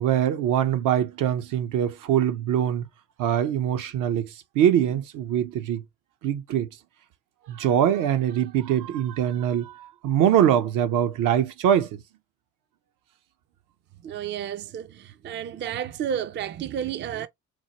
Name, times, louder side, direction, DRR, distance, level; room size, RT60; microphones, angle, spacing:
voice 1, 0.0-2.8 3.2-5.8 6.2-6.7 7.5-12.0, right 10 dB, 70° right, 0.7 m, -23 dB
voice 2, 14.0-17.3, right 9 dB, 35° right, 0.4 m, -31 dB
4.4 x 2.1 x 2.9 m
supercardioid pair, 75°, 33 cm